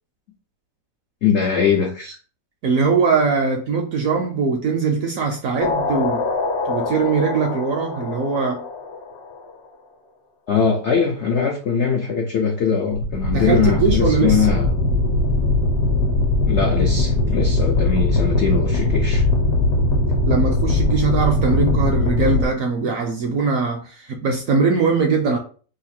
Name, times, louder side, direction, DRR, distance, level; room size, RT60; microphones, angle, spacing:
voice 1, 1.2-2.2 10.5-14.7 16.5-19.2, left 6 dB, 90° left, 0.6 m, -21 dB
voice 2, 2.6-6.3 6.7-8.6 13.3-14.5 20.3-25.4, right 4 dB, 70° right, 0.8 m, -21 dB
sound 1, 5.6-9.5 12.9-22.4, left 2 dB, 65° left, 1.1 m, -21 dB
3.0 x 2.5 x 4.2 m
omnidirectional pair, 1.9 m